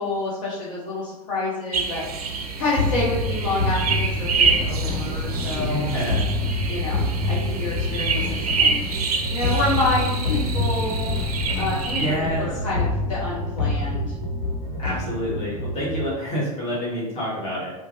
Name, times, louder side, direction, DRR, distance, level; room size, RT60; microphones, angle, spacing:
voice 1, 0.0-2.0 2.6-5.9 6.7-8.8 9.3-11.1 11.5-14.1, left 2 dB, 60° left, -8 dB, 0.7 m, -28 dB
sound 1, 1.7-12.2, right 5 dB, 70° right, 0.4 m, -27 dB
sound 2, 2.8-16.1, left 2 dB, 85° left, 0.9 m, -26 dB
voice 2, 5.5-6.3 12.0-12.6 14.8-17.7, equal, 30° left, -6 dB, 1.3 m, -28 dB
3.1 x 2.2 x 2.7 m, 1.0 s
figure-of-eight pair, 90°, 20 cm